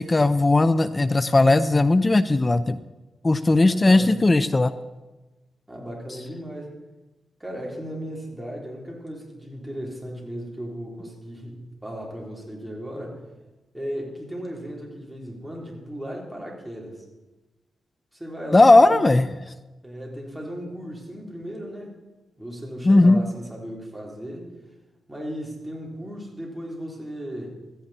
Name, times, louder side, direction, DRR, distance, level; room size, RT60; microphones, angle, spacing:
voice 1, 0.0-2.8 3.2-4.7 18.5-19.3 22.8-23.2, left 2 dB, 25° left, 13 dB, 0.5 m, -17 dB
voice 2, 3.6-4.2 5.7-6.7 7.4-13.2 13.7-17.0 18.1-19.2 19.8-22.0 22.4-24.5 25.1-27.6, equal, 5° right, -2 dB, 3.7 m, -36 dB
16.0 x 14.5 x 4.3 m, 1.1 s
wide cardioid pair, 120°, 0 cm